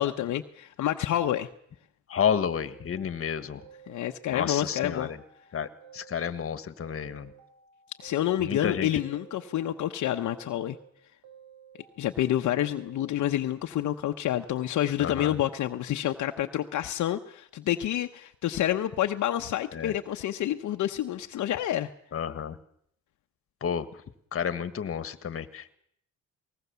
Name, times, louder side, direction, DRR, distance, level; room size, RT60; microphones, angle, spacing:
voice 1, 0.0-1.5 3.9-5.1 8.0-10.8 12.0-21.9, left 12 dB, 70° left, 5 dB, 1.0 m, -28 dB
voice 2, 2.1-3.6 4.3-5.2 5.5-7.3 8.4-9.0 15.0-15.3 19.7-19.9 22.1-22.6 23.6-23.9 24.3-25.7, left 8 dB, 45° left, 12 dB, 1.6 m, -31 dB
sound 1, 2.4-4.3 4.6-6.5 6.8-8.7 9.0-10.9 11.2-13.1, right 8 dB, 85° right, 5.3 m, -53 dB
21.0 x 19.0 x 7.0 m, 0.70 s
cardioid pair, 90°, 30 cm